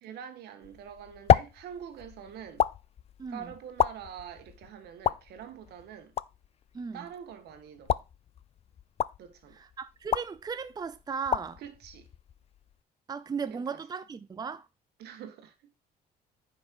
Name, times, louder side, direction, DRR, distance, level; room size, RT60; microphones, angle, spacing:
voice 1, 0.0-2.6 3.3-6.1 6.9-8.0 9.2-9.6 11.6-12.1 13.5-13.6 15.0-15.7, right 8 dB, 75° right, 1.7 m, -45 dB
sound 1, 0.6-12.8, left 9 dB, 40° left, 0.4 m, -32 dB
voice 2, 3.2-3.5 6.7-7.1 9.5-11.6 13.1-14.7, right 6 dB, 25° right, 0.6 m, -36 dB
9.8 x 5.5 x 4.6 m
cardioid pair, 110°, 17 cm